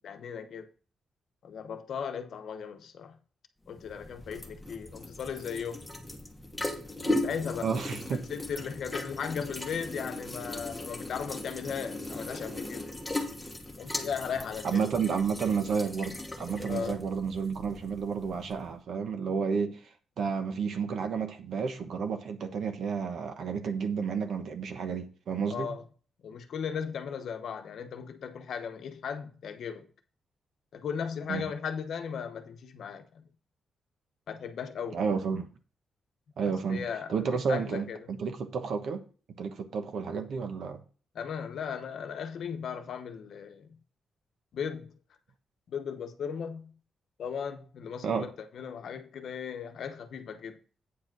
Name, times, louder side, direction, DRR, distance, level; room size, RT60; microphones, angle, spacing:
voice 1, 0.0-0.7 1.4-3.2 3.7-5.8 7.0-7.7 8.3-12.9 13.8-14.9 16.7-17.0 25.5-25.8 26.2-29.9 30.7-33.3 34.3-35.0 36.4-38.1 41.1-43.8 44.5-45.0 45.7-46.8 47.2-50.6, left 7 dB, 65° left, 0.9 m, -37 dB
sound 1, 3.7-18.7, left 1 dB, 5° left, 1.2 m, -38 dB
voice 2, 7.6-8.2 14.6-19.8 20.2-25.7 31.3-31.5 34.9-35.5 36.4-39.0 39.4-40.8 48.0-48.3, right 6 dB, 60° right, 1.1 m, -31 dB
8.6 x 5.0 x 6.0 m
wide cardioid pair, 170°, 0 cm